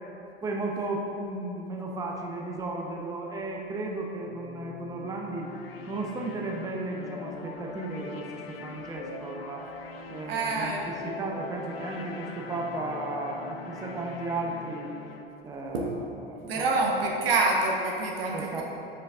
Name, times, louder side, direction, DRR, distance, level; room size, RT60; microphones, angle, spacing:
voice 1, 0.4-5.5 5.9-9.6 10.1-14.9 15.4-15.9 16.3-16.6 18.3-18.6, right 2 dB, 10° right, 0 dB, 0.6 m, -34 dB
sound 1, 4.2-15.3, left 4 dB, 75° left, 0.5 m, -42 dB
voice 2, 10.2-10.9 15.7-16.0 16.5-18.6, right 3 dB, 70° right, 0 dB, 1.0 m, -27 dB
6.4 x 4.5 x 3.5 m, 2.7 s
figure-of-eight pair, 80°, 30 cm